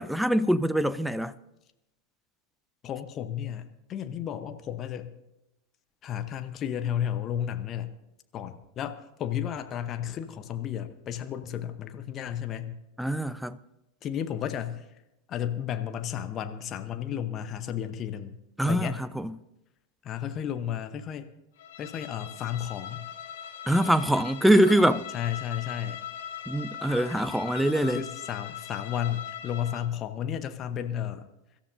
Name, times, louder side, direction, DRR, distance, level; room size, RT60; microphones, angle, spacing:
voice 1, 0.0-1.3 13.0-13.6 18.6-19.4 23.7-25.1 26.5-28.0, equal, ahead, 0.5 m, -24 dB
voice 2, 2.8-5.1 6.0-7.9 8.3-12.7 14.0-14.8 15.3-18.4 18.6-19.0 20.0-21.3 21.8-23.0 25.1-26.0 27.8-31.3, left 10 dB, 30° left, 0.9 m, -33 dB
Bowed string instrument, 21.6-30.0, left 9 dB, 55° left, 1.4 m, -40 dB
24.0 x 13.0 x 2.7 m
figure-of-eight pair, 90°, 0 cm